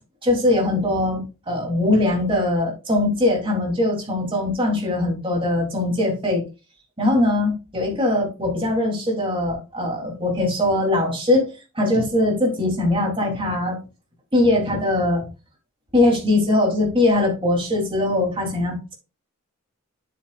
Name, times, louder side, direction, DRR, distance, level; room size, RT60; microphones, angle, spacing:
voice 1, 0.2-6.4 7.0-13.8 14.3-15.2 15.9-18.9, left 2 dB, 25° right, -1 dB, 3.2 m, -21 dB
9.2 x 8.3 x 2.4 m, 0.30 s
head